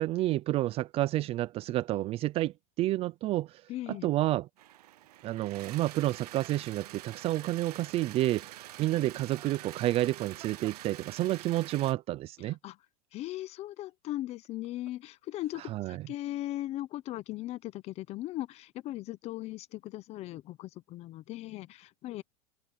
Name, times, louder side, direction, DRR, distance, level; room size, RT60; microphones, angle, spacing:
voice 1, 0.0-3.6 3.9-4.5 5.2-12.6 15.7-16.1, right 16 dB, 30° right, 0.5 m, -30 dB
voice 2, 3.7-4.1 12.6-12.8 13.1-22.2, left 15 dB, 35° left, 0.8 m, -38 dB
sound 1, 4.6-11.9, right 14 dB, 90° right, 0.8 m, -47 dB
Laughter, 8.8-11.5 14.3-15.1 15.3-15.9, right 17 dB, 75° right, 2.8 m, -55 dB
supercardioid pair, 145°, 20 cm